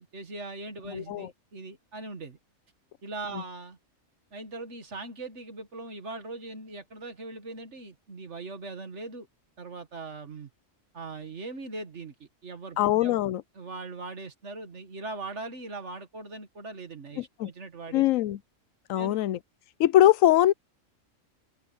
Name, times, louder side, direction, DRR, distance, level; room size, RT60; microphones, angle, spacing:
voice 1, 0.0-2.4 3.0-3.8 4.3-9.3 9.6-10.5 10.9-13.2 13.6-18.0 18.9-19.3, right 3 dB, 60° right, 2.1 m, -40 dB
voice 2, 0.9-1.3 3.3-3.4 12.8-13.4 17.2-17.5 17.9-18.4 18.9-19.4 19.8-20.5, left 13 dB, 80° left, 1.0 m, -22 dB
omnidirectional pair, 1.4 m